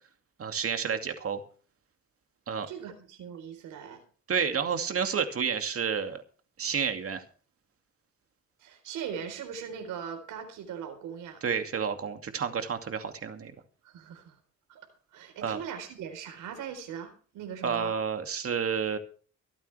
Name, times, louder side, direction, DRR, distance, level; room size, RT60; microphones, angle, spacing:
voice 1, 0.4-1.4 2.5-2.7 4.3-6.2 6.6-7.2 11.4-13.5 15.4-15.6 17.6-19.0, right 6 dB, 50° right, 6 dB, 2.4 m, -30 dB
voice 2, 2.7-4.0 8.6-11.4 13.8-14.4 14.7-17.9, right 7 dB, 90° right, 6 dB, 4.2 m, -40 dB
24.5 x 8.9 x 3.4 m, 0.41 s
cardioid pair, 90°, 30 cm